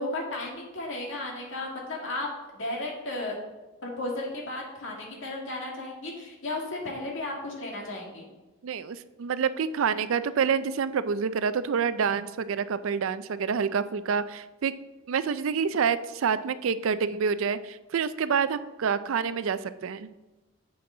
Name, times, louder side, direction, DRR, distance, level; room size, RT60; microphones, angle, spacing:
voice 1, 0.0-2.3 2.5-3.4 3.8-8.3, left 2 dB, 60° left, -1 dB, 2.0 m, -34 dB
voice 2, 8.6-14.7 15.1-20.1, right 6 dB, 70° right, 14 dB, 0.4 m, -27 dB
9.5 x 7.1 x 3.8 m, 1.1 s
head